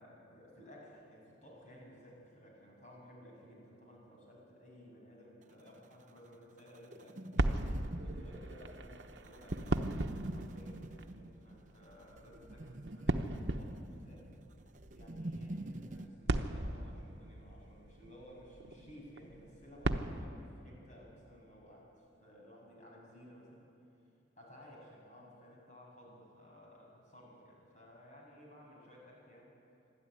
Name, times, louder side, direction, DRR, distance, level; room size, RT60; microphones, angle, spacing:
voice 1, 0.0-7.3 8.0-14.3 14.9-23.7 24.4-29.6, equal, 40° left, -3 dB, 7.2 m, -56 dB
sound 1, 5.4-16.1, right 1 dB, 40° right, 0.7 m, -47 dB
sound 2, 7.4-20.3, right 2 dB, 70° right, 1.0 m, -38 dB
26.5 x 12.5 x 9.9 m, 2.7 s
head